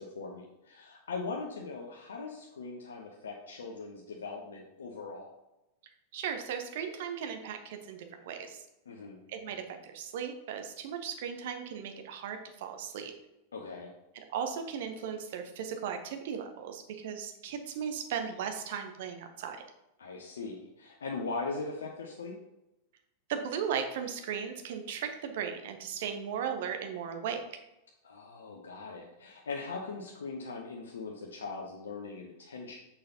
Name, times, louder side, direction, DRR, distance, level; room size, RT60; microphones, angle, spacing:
voice 1, 0.0-5.3 8.9-9.2 13.5-13.9 20.0-22.3 28.0-32.8, left 4 dB, 70° left, 0 dB, 0.7 m, -40 dB
voice 2, 6.1-8.6 9.3-13.1 14.1-19.6 23.3-27.4, right 7 dB, 55° right, 6 dB, 0.8 m, -37 dB
6.6 x 5.5 x 2.8 m, 0.93 s
figure-of-eight pair, 90°, 0 cm